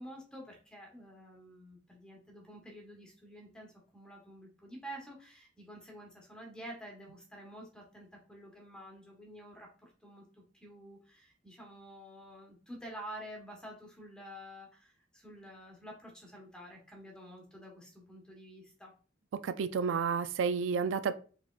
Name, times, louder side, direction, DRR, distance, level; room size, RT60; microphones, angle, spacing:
voice 1, 0.0-10.3 10.5-18.9, equal, 5° left, -1 dB, 1.2 m, -49 dB
voice 2, 19.4-21.1, right 6 dB, 85° right, 11 dB, 0.3 m, -31 dB
4.8 x 3.5 x 2.4 m, 0.39 s
head